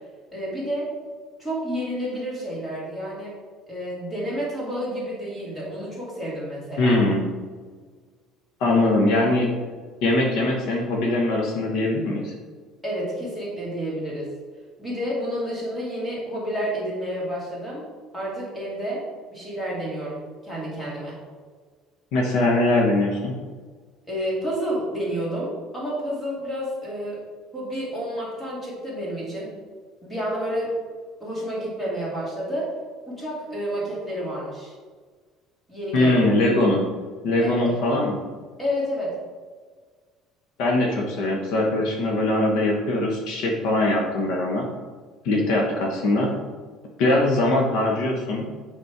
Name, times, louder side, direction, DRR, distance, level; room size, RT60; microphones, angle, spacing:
voice 1, 0.3-0.9 1.4-3.3 3.7-7.0 12.8-14.3 14.8-17.9 18.1-19.0 19.3-21.2 24.1-27.2 27.5-29.5 30.0-30.7 31.2-32.7 33.1-34.7 35.7-36.2 37.4-37.7 38.6-39.2, equal, 5° left, -6 dB, 2.2 m, -30 dB
voice 2, 6.8-7.2 8.6-9.5 10.0-12.3 22.1-23.3 35.9-36.8 37.2-38.2 40.6-44.7 45.2-46.3 47.0-48.4, left 2 dB, 60° left, 0 dB, 1.2 m, -21 dB
8.1 x 4.3 x 4.6 m, 1.5 s
cardioid pair, 180°, 0 cm